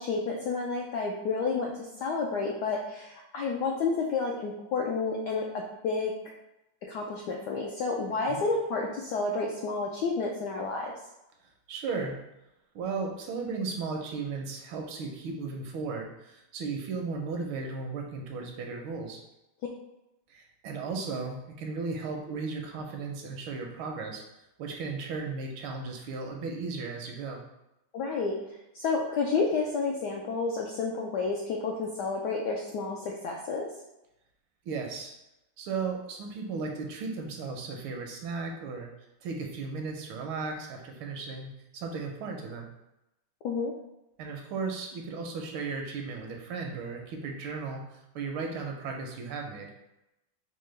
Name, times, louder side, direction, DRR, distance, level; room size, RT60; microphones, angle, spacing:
voice 1, 0.0-1.7 2.0-6.1 6.9-10.9 27.9-28.4 28.7-33.7 43.4-43.7, left 4 dB, 85° left, -1 dB, 0.9 m, -30 dB
voice 2, 11.7-12.2 12.7-19.2 20.3-24.2 24.6-27.4 34.7-35.1 35.6-38.9 39.2-42.7 44.2-49.7, right 4 dB, 80° right, 2 dB, 1.4 m, -35 dB
5.3 x 2.2 x 3.2 m, 0.91 s
omnidirectional pair, 2.3 m